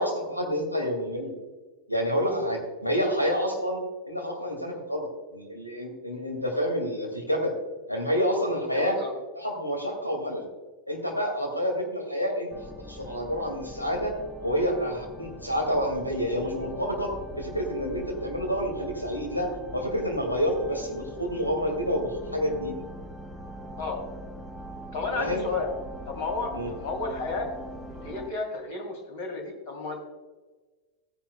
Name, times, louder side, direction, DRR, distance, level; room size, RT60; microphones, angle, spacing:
voice 1, 0.0-1.3 1.9-3.8 4.1-7.5 7.9-9.0 9.4-10.5 10.9-14.1 14.4-22.8 25.1-25.5 26.5-26.7, equal, 85° left, 1 dB, 2.4 m, -28 dB
voice 2, 8.7-9.1 23.8-24.0 24.9-25.7 26.0-27.5 27.9-30.0, left 3 dB, 50° left, 2 dB, 3.3 m, -32 dB
sound 1, 12.5-28.3, equal, ahead, 0.8 m, -42 dB
15.5 x 10.5 x 2.3 m, 1.3 s
figure-of-eight pair, 90°, 0 cm